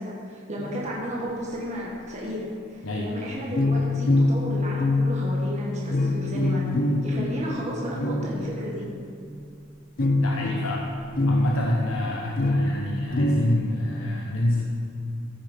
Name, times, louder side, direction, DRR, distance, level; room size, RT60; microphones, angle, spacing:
voice 1, 0.0-6.6 7.0-8.9, equal, 35° right, -4 dB, 1.6 m, -33 dB
sound 1, 0.6-1.3 3.6-9.3 10.0-13.6, left 2 dB, 45° left, 0.7 m, -25 dB
voice 2, 2.8-3.5 10.2-10.8 11.3-14.6, left 1 dB, 75° left, -1 dB, 1.1 m, -28 dB
14.5 x 6.7 x 5.1 m, 2.5 s
head